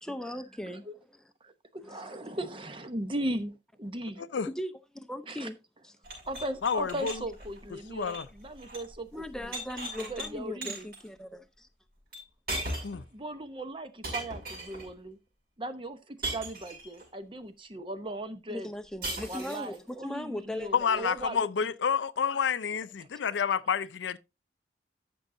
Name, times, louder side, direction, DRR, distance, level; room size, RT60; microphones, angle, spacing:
voice 1, 0.0-0.8 1.8-2.3 4.5-5.6 5.8-5.9 9.1-11.7 18.5-21.0, left 1 dB, 5° left, 0.6 m, -39 dB
voice 2, 1.4-3.5 3.8-4.2 5.3-5.5 6.3-9.2 10.1-10.9 13.1-15.2 15.6-18.7 19.3-21.7, right 1 dB, 25° right, 0.8 m, -38 dB
sound 1, 6.0-8.9 9.2-10.3 10.6-11.0 12.1-12.2 12.5-13.1 14.0-14.9 16.2-17.0 19.0-19.8, right 1 dB, 55° right, 6.4 m, -38 dB
voice 3, 6.6-7.1 7.9-8.3 12.8-13.0 20.7-24.2, left 6 dB, 80° left, 0.5 m, -29 dB
13.5 x 6.2 x 2.6 m
head